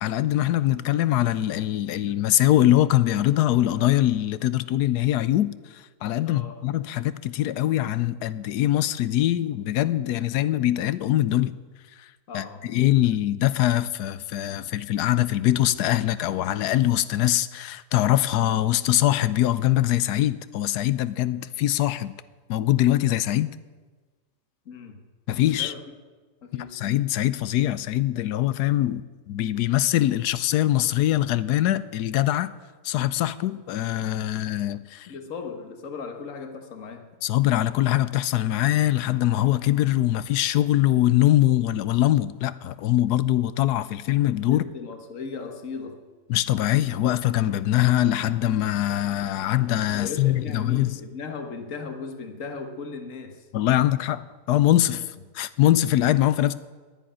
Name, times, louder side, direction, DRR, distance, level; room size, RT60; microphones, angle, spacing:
voice 1, 0.0-11.6 12.3-22.1 22.5-23.5 25.3-25.7 26.7-32.5 32.8-35.1 37.2-44.6 46.3-50.9 53.5-56.5, left 13 dB, 75° left, 1.1 m, -23 dB
voice 2, 6.2-6.6 12.3-12.7 24.7-25.0 25.5-26.0 26.4-26.8 35.1-37.1 44.5-46.0 49.9-53.5, left 5 dB, 50° left, 1.7 m, -37 dB
10.5 x 10.5 x 10.0 m
omnidirectional pair, 1.8 m